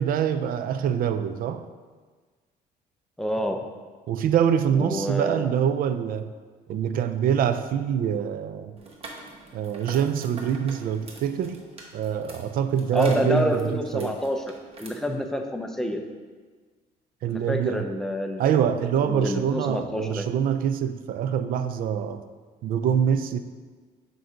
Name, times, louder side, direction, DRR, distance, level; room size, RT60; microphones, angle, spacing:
voice 1, 0.0-1.7 4.1-6.3 6.7-8.8 9.5-11.6 11.9-14.2 17.2-17.9 18.4-22.2 22.6-23.4, right 8 dB, 60° right, 10 dB, 0.4 m, -25 dB
voice 2, 3.2-3.6 4.8-5.5 12.9-14.4 14.8-16.0 17.3-18.6 19.0-20.3, equal, 5° left, 4 dB, 0.5 m, -28 dB
sound 1, 8.8-14.9, right 3 dB, 35° right, 1.0 m, -45 dB
7.6 x 2.7 x 5.0 m, 1.5 s
cardioid pair, 110°, 17 cm